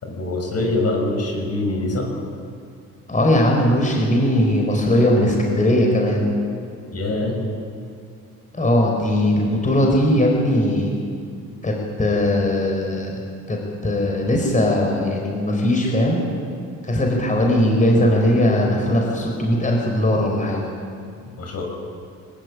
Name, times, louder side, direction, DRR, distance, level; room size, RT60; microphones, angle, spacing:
voice 1, 0.0-2.1 6.9-7.4 21.4-21.6, left 2 dB, 55° left, 1 dB, 6.3 m, -24 dB
voice 2, 3.1-6.2 8.5-10.9 11.6-13.2 13.5-16.2 16.8-20.6, left 1 dB, 25° left, 0 dB, 5.1 m, -19 dB
21.5 x 19.0 x 8.8 m, 2.4 s
cardioid pair, 90°, 30 cm